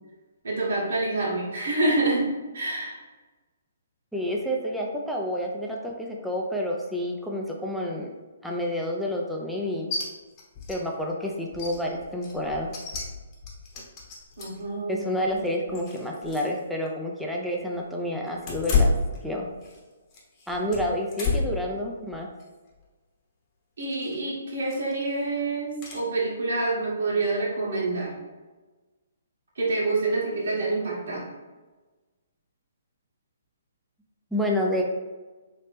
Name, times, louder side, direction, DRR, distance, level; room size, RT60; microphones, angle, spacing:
voice 1, 0.4-2.3 2.5-3.0 14.4-15.0 15.3-15.4 23.8-28.1 29.6-31.3, right 2 dB, 70° right, -5 dB, 1.4 m, -27 dB
voice 2, 4.1-8.1 8.4-9.9 10.7-12.7 14.9-18.9 19.2-19.5 20.5-22.3 34.3-34.8, left 1 dB, ahead, -2 dB, 0.4 m, -29 dB
sound 1, 9.9-10.0 10.4-10.8 11.1-11.2 11.5-14.7 15.2-16.6 16.9-17.0 18.4-19.8 20.1-21.6 22.1-22.4 23.8-24.2 24.6-25.0 25.8-26.0, left 4 dB, 30° left, 1.1 m, -30 dB
3.2 x 3.0 x 3.2 m, 1.3 s
hypercardioid pair, 140°, 0 cm